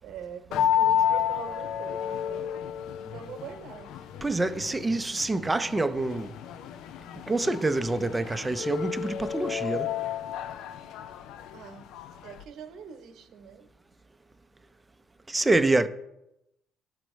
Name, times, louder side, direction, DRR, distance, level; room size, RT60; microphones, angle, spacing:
voice 1, 0.0-2.7 3.0-4.0 4.5-4.8 11.5-11.9 12.2-13.7, right 7 dB, 65° right, 0.9 m, -43 dB
sound 1, 0.5-12.4, left 9 dB, 75° left, 0.4 m, -31 dB
voice 2, 4.2-6.3 7.3-9.9 15.3-15.9, right 2 dB, 20° right, 0.5 m, -26 dB
11.0 x 4.4 x 3.1 m
supercardioid pair, 65°, 0 cm